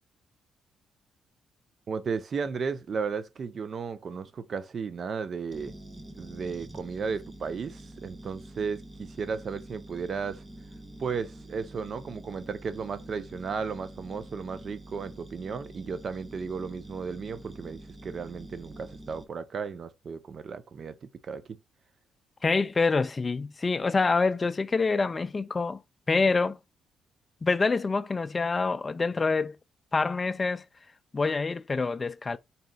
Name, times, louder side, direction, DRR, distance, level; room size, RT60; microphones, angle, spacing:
voice 1, 1.9-5.7 6.1-10.4 11.0-21.6, right 5 dB, 50° right, 0.5 m, -34 dB
sound 1, 5.5-19.2, right 1 dB, 10° right, 0.8 m, -46 dB
voice 2, 22.4-25.8 26.1-26.6 27.4-29.6 29.9-30.6 31.1-32.4, left 4 dB, 30° left, 0.3 m, -26 dB
4.1 x 3.8 x 2.2 m
cardioid pair, 90°, 0 cm